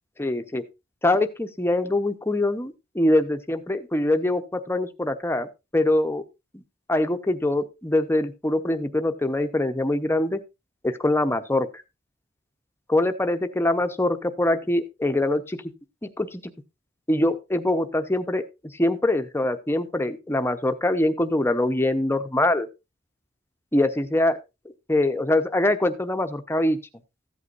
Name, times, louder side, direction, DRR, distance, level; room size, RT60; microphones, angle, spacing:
voice 1, 0.2-0.7 1.0-6.2 6.5-6.6 6.9-10.4 10.8-11.7 12.9-15.6 16.0-16.4 17.1-18.4 18.8-22.7 23.7-24.4 24.9-26.8, left 1 dB, 15° left, 8 dB, 0.8 m, -23 dB
14.5 x 8.3 x 2.5 m, 0.24 s
head